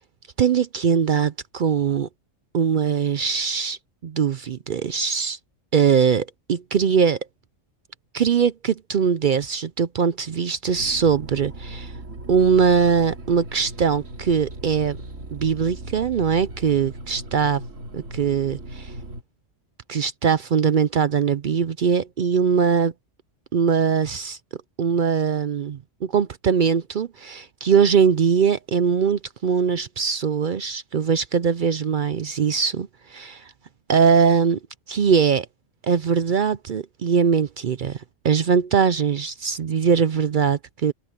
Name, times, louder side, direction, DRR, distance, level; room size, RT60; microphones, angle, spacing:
voice 1, 0.4-2.1 2.5-5.4 5.7-7.2 8.1-11.9 12.3-15.0 15.3-17.6 17.9-18.9 19.9-22.9 23.5-24.4 24.8-33.5 33.9-34.6 34.9-35.5 35.8-40.9, right 6 dB, 55° right, 0.6 m, -21 dB
sound 1, 10.7-19.2, right 1 dB, 80° right, 3.0 m, -38 dB
omnidirectional pair, 1.3 m